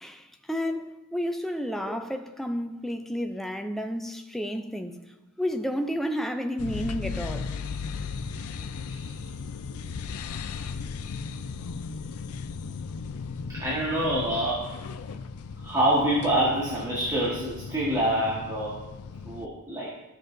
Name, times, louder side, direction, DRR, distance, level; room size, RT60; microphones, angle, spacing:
voice 1, 0.0-5.0 5.4-7.6, equal, ahead, 0.4 m, -31 dB
sound 1, 6.6-19.5, left 5 dB, 80° left, 0.4 m, -36 dB
voice 2, 13.5-14.7 15.6-18.8 19.2-19.9, right 1 dB, 15° right, 1.4 m, -26 dB
14.0 x 6.3 x 2.6 m
head